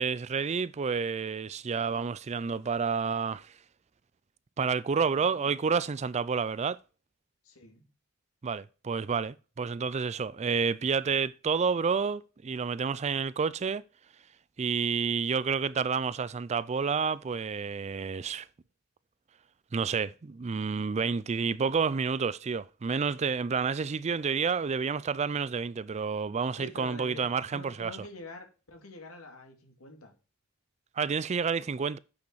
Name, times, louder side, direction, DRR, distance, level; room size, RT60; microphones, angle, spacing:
voice 1, 0.0-3.5 4.6-6.8 8.4-13.8 14.6-18.5 19.7-27.9 31.0-32.0, right 5 dB, 30° right, 0.4 m, -29 dB
voice 2, 4.9-5.5 7.4-7.8 26.5-30.1, left 2 dB, 80° left, 2.7 m, -47 dB
8.6 x 6.4 x 4.7 m
head